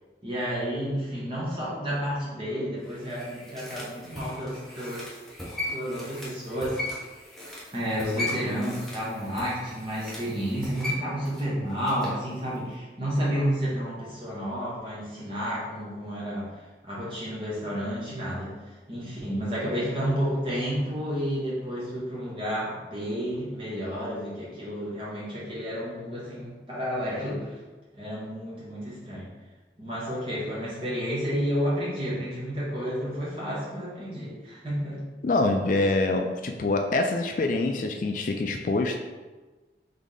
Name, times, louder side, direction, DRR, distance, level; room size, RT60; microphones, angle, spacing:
voice 1, 0.2-5.2 5.7-6.9 7.7-16.5 16.8-18.5 18.9-27.6 27.9-29.3 29.8-35.0, equal, 30° right, -7 dB, 1.5 m, -31 dB
sound 1, 2.8-12.2 12.6-12.7, left 1 dB, ahead, 0.8 m, -37 dB
voice 2, 35.2-39.0, left 2 dB, 45° left, 4 dB, 0.3 m, -25 dB
3.8 x 3.5 x 3.7 m, 1.3 s
head